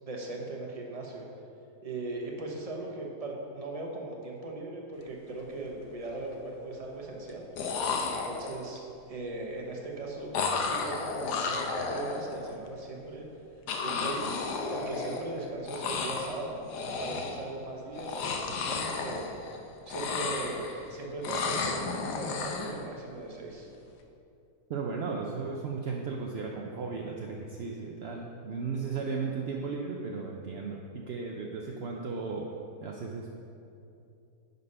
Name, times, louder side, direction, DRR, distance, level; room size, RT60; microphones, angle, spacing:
voice 1, 0.0-1.3 1.8-7.5 8.0-13.2 13.8-14.3 14.7-16.6 16.9-19.5 19.9-23.7, right 2 dB, 25° right, -1 dB, 0.9 m, -38 dB
sound 1, 5.1-5.3 5.7-6.3 7.3-7.4 7.6-8.8 10.3-12.5 13.7-15.4 15.6-16.4 16.7-17.5 17.9-19.6 19.8-20.9 21.2-22.8, left 4 dB, 85° left, 1.3 m, -33 dB
voice 2, 24.7-32.5 32.8-33.3, right 4 dB, 65° right, 0 dB, 0.6 m, -35 dB
10.5 x 4.1 x 5.4 m, 2.7 s
omnidirectional pair, 1.7 m